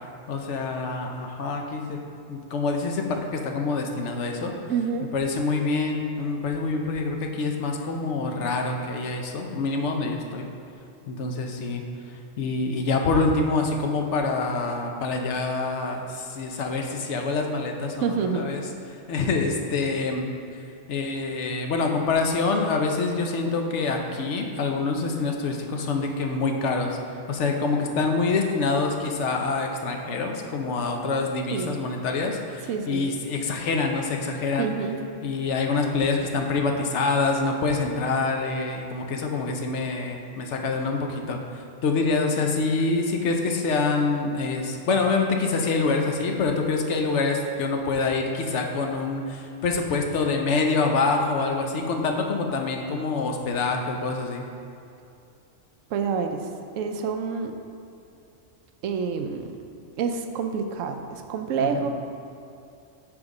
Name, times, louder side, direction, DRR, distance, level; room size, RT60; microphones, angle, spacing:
voice 1, 0.3-2.0 2.3-4.5 5.1-10.5 11.1-11.8 12.1-18.6 18.9-20.3 20.9-34.7 35.2-54.4 61.6-61.8, left 3 dB, 70° left, 3 dB, 1.0 m, -26 dB
voice 2, 4.7-5.1 18.0-18.5 31.5-31.8 32.7-33.0 34.6-35.0 55.9-56.5 56.7-57.6 58.8-59.5 60.0-61.9, right 6 dB, 80° right, 6 dB, 0.9 m, -27 dB
6.1 x 5.2 x 4.8 m, 2.6 s
omnidirectional pair, 1.3 m